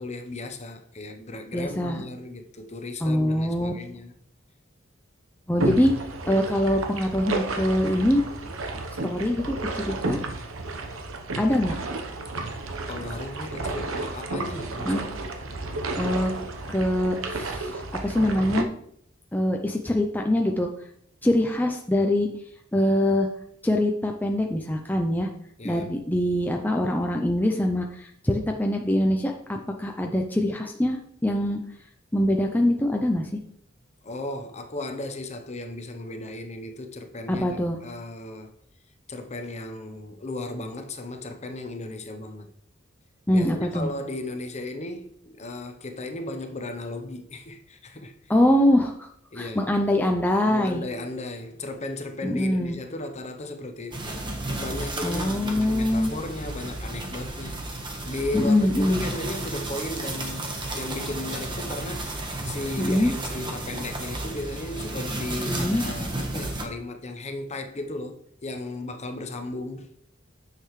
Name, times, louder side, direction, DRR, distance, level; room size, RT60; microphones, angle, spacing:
voice 1, 0.0-4.1 12.9-15.1 25.6-25.9 34.0-38.6 39.1-42.5 43.3-48.1 49.3-49.7 50.5-57.6 58.0-62.2 62.4-68.2 68.4-69.9, left 2 dB, 35° left, 0.8 m, -35 dB
voice 2, 1.5-2.0 3.0-3.7 5.5-5.9 6.3-8.2 9.0-10.2 11.4-11.8 14.9-15.1 16.0-16.3 16.7-18.7 19.3-20.7 21.2-22.3 22.7-23.3 23.6-25.3 25.6-31.6 32.1-33.4 37.3-37.8 43.3-43.9 48.3-49.1 49.4-50.8 52.2-52.8 55.0-56.1 58.3-59.0 62.8-63.1 65.5-65.8, left 1 dB, 10° left, 0.5 m, -23 dB
sound 1, 5.6-18.6, right 2 dB, 90° right, 1.0 m, -32 dB
sound 2, 53.9-66.7, right 2 dB, 25° right, 1.3 m, -33 dB
9.6 x 6.7 x 3.2 m
head